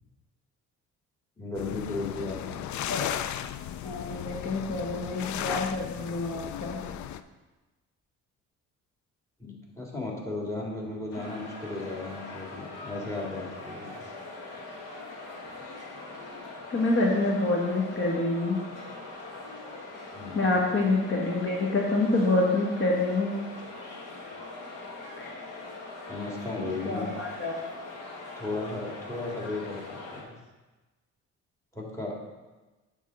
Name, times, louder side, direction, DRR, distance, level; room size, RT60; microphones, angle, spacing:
voice 1, 1.4-2.6 9.4-14.1 20.1-20.4 26.1-27.1 28.4-30.4 31.7-32.2, left 2 dB, 10° left, -2 dB, 2.1 m, -35 dB
sound 1, 1.5-7.2, left 10 dB, 70° left, 0.5 m, -35 dB
voice 2, 3.8-6.8 16.7-18.6 20.3-23.4 25.2-25.3 26.8-27.6, left 2 dB, 45° left, -2 dB, 1.3 m, -27 dB
sound 2, 11.1-30.2, left 2 dB, 85° left, 1.7 m, -42 dB
9.0 x 3.7 x 6.3 m, 1.2 s
cardioid pair, 90°, 30 cm